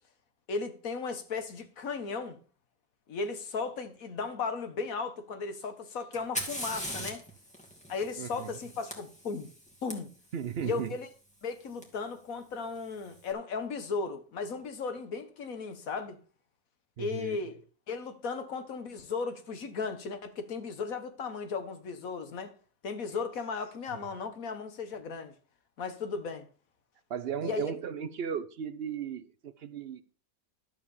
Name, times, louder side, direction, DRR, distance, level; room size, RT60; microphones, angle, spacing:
voice 1, 0.5-2.4 3.1-7.2 7.9-9.5 9.8-10.1 10.6-11.1 11.4-16.2 17.0-17.6 17.9-22.5 22.8-25.3 25.8-26.5 27.4-27.6, left 4 dB, 65° left, 1.7 m, -36 dB
Fire, 6.1-9.9 11.8-11.9 12.8-13.2, equal, 5° left, 2.3 m, -40 dB
voice 2, 8.2-8.5 10.3-10.9 17.0-17.4 27.1-30.0, right 8 dB, 55° right, 0.7 m, -36 dB
12.5 x 4.9 x 7.1 m
omnidirectional pair, 1.6 m